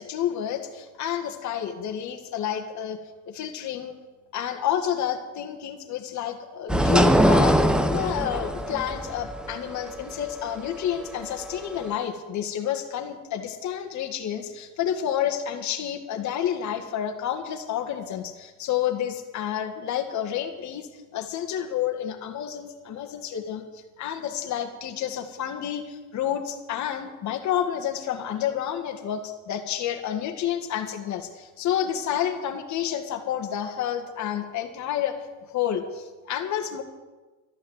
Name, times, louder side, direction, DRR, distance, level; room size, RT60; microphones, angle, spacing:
voice 1, 0.0-3.0 3.3-4.0 4.3-7.6 7.9-23.6 24.0-35.1 35.5-36.8, left 10 dB, 40° left, 5 dB, 2.0 m, -29 dB
sound 1, 6.7-11.9, equal, ahead, 0.8 m, -22 dB
13.0 x 11.5 x 8.2 m, 1.3 s
cardioid pair, 140°, 45 cm